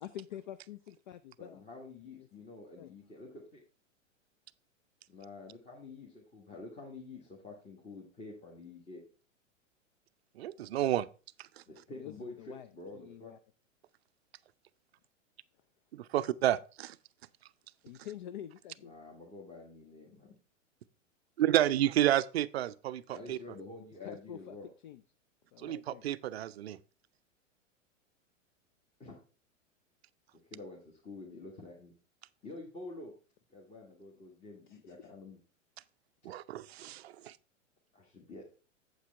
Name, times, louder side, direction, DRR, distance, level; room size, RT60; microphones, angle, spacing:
voice 1, 0.0-1.6 2.8-2.9 12.0-12.7 12.9-13.4 17.8-18.9 24.0-24.6 24.8-25.0 25.5-26.0 34.7-35.1, left 11 dB, 40° left, 0.4 m, -47 dB
voice 2, 1.4-3.6 5.1-9.0 11.7-13.3 18.8-20.3 23.1-24.7 29.0-29.2 30.4-31.9 32.4-33.1 33.5-35.4 37.9-38.4, left 3 dB, 20° left, 1.6 m, -48 dB
voice 3, 10.4-11.1 15.9-16.9 21.4-23.4 25.6-26.8 36.2-37.3, right 12 dB, 55° right, 0.5 m, -30 dB
8.4 x 7.8 x 3.4 m
figure-of-eight pair, 100°, 39 cm